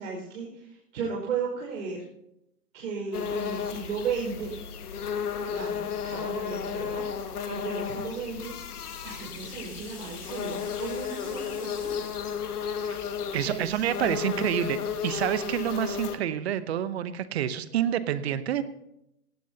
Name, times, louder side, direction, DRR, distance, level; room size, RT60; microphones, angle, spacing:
voice 1, 0.0-2.0 2.7-4.6 5.4-8.5 9.0-12.0 13.4-14.7, right 5 dB, 60° right, -3 dB, 5.3 m, -35 dB
sound 1, 3.1-16.2, left 7 dB, 70° left, 1.6 m, -34 dB
sound 2, 8.4-14.6, left 4 dB, 20° left, 6.5 m, -51 dB
voice 2, 13.3-14.8 15.0-18.6, right 10 dB, 40° right, 14 dB, 0.9 m, -28 dB
17.5 x 15.5 x 2.8 m, 0.82 s
hypercardioid pair, 140°, 47 cm